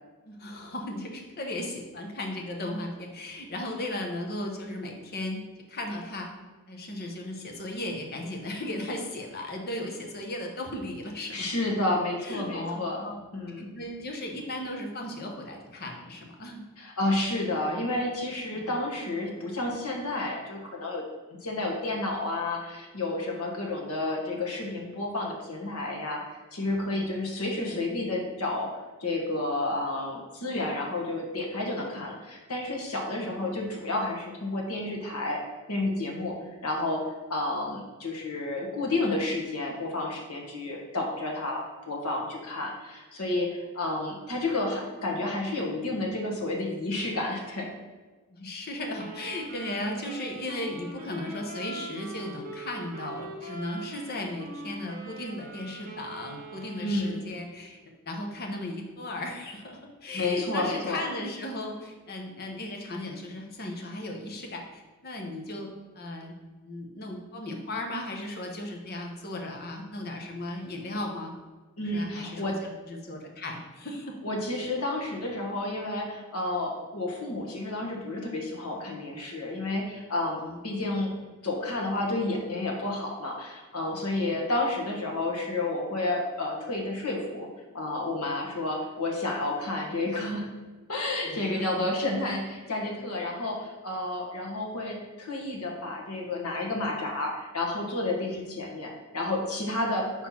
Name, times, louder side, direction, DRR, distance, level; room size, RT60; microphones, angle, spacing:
voice 1, 0.3-5.4 5.7-6.3 6.7-11.4 12.2-12.8 13.0-13.2 13.7-16.6 17.6-17.8 26.9-27.0 27.7-27.9 33.1-33.3 48.3-57.8 58.1-65.7 66.0-66.4 66.6-71.3 71.8-72.5 72.9-74.2 80.4-80.6 84.2-84.4 91.3-91.9, left 1 dB, 45° left, 2 dB, 1.0 m, -36 dB
voice 2, 11.3-13.1 13.3-13.7 16.8-21.0 21.4-26.2 26.5-35.4 35.7-37.0 37.3-47.7 56.8-57.2 60.1-61.0 71.8-72.6 74.2-81.1 81.4-87.5 87.7-90.5 90.9-100.3, left 2 dB, 90° left, 0 dB, 1.4 m, -31 dB
Wind instrument woodwind instrument, 48.9-57.4, right 3 dB, 40° right, 1.0 m, -43 dB
4.4 x 4.3 x 5.7 m, 1.3 s
head